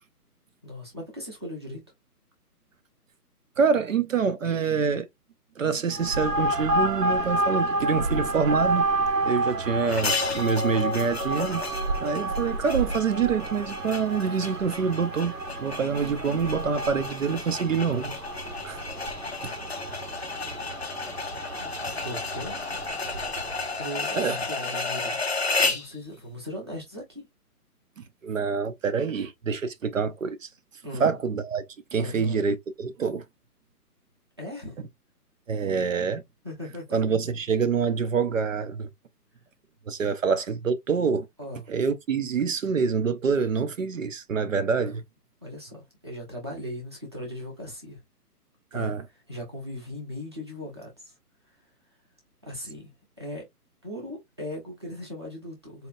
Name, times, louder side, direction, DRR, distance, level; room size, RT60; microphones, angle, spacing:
voice 1, 0.6-1.8 19.5-19.6 21.6-21.7 22.0-22.6 23.8-25.2 25.6-27.3 30.8-31.1 32.0-32.4 34.4-34.8 35.6-35.8 36.4-37.2 41.4-41.7 44.7-44.9 45.4-48.0 48.7-48.9 49.3-51.1 52.4-52.9 53.2-53.5 53.8-55.9, left 1 dB, 15° right, 0.8 m, -38 dB
voice 2, 3.6-5.1 5.6-8.9 9.2-11.6 12.0-15.3 15.6-18.1 18.6-18.8 24.1-24.4 28.0-30.5 31.0-33.2 35.5-36.2 36.9-38.9 39.9-41.3 41.7-45.0 48.7-49.0, right 5 dB, 55° right, 0.6 m, -26 dB
sound 1, 5.9-23.8, right 2 dB, 90° right, 1.2 m, -30 dB
sound 2, 9.9-25.9, left 4 dB, 45° left, 0.4 m, -33 dB
4.2 x 2.8 x 2.4 m
hypercardioid pair, 175°, 47 cm